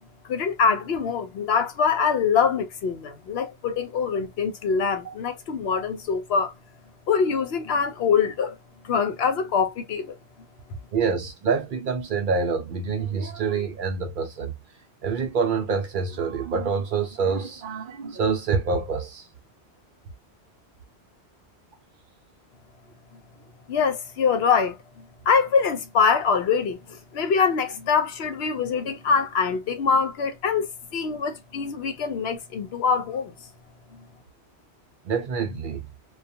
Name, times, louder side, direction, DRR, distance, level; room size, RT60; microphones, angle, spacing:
voice 1, 0.3-6.5 7.1-8.6 8.8-10.1 23.7-33.3, left 6 dB, 75° left, 0.8 m, -24 dB
voice 2, 10.9-14.5 15.0-19.3 35.0-35.9, right 5 dB, 60° right, 0.6 m, -26 dB
2.3 x 2.3 x 2.6 m
omnidirectional pair, 1.1 m